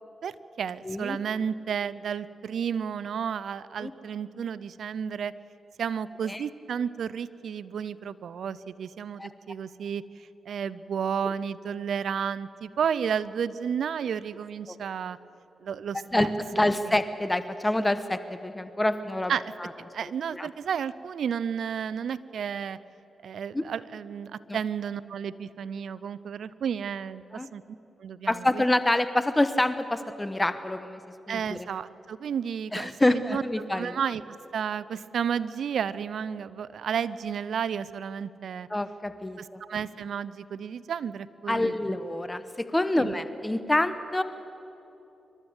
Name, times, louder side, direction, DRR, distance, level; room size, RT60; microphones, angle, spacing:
voice 1, 0.2-5.3 5.8-10.0 10.5-15.2 15.6-16.3 19.3-19.5 19.9-22.8 23.2-27.6 28.0-28.6 31.3-33.4 33.7-34.2 34.5-38.7 39.6-42.0 43.0-43.1, right 7 dB, 75° right, 18 dB, 0.5 m, -32 dB
voice 2, 0.8-1.2 3.8-3.9 6.2-6.4 9.2-9.3 11.2-11.3 14.7-14.8 16.1-19.3 19.6-19.7 20.0-20.5 23.5-23.7 24.5-24.6 27.3-27.5 28.3-31.0 31.3-31.6 32.7-34.0 38.7-39.6 41.5-44.2, left 1 dB, 15° left, 12 dB, 1.1 m, -27 dB
26.5 x 12.5 x 8.0 m, 3.0 s
supercardioid pair, 55°, 0 cm